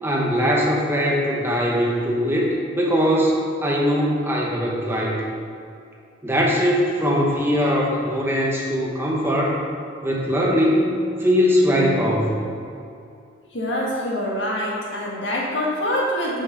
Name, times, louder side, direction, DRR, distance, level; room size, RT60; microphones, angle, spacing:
voice 1, 0.0-3.3 3.6-5.2 6.2-9.6 10.0-10.9 11.2-12.4, equal, 15° right, -3 dB, 1.1 m, -21 dB
voice 2, 13.5-16.4, equal, 80° left, -3 dB, 1.7 m, -25 dB
6.3 x 6.0 x 5.2 m, 2.5 s
head